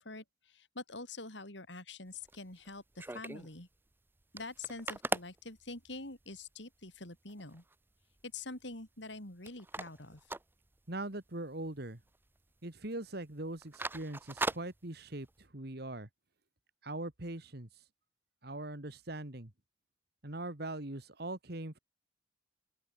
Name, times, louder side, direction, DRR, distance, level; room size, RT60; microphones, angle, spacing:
voice 1, 0.0-3.7 4.3-7.6 8.2-10.2, left 3 dB, 70° left, 5.9 m, -46 dB
sound 1, 2.1-3.5 3.9-4.0 4.2-6.3 6.9-7.0 7.3-7.7 8.2-9.2 9.4-11.2 11.5-11.7 12.0-12.5 12.8-13.0 13.4-15.4, right 2 dB, 10° right, 0.6 m, -40 dB
voice 2, 10.9-12.0 12.6-16.1 16.8-17.7 18.4-19.5 20.2-21.8, right 2 dB, 55° right, 2.2 m, -41 dB
open air
head